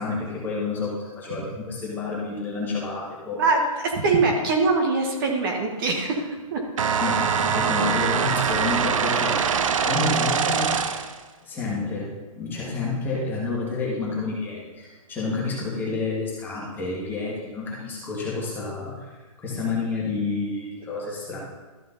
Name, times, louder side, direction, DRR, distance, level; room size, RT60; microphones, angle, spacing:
voice 1, 0.0-3.4 7.0-10.8 11.4-19.1 19.4-21.4, left 3 dB, 10° left, -5 dB, 2.0 m, -29 dB
voice 2, 3.4-6.6, right 3 dB, 40° right, 1 dB, 1.5 m, -23 dB
sound 1, 6.8-11.2, right 7 dB, 65° right, 0.8 m, -23 dB
13.5 x 5.1 x 4.1 m, 1.3 s
hypercardioid pair, 155°, 18 cm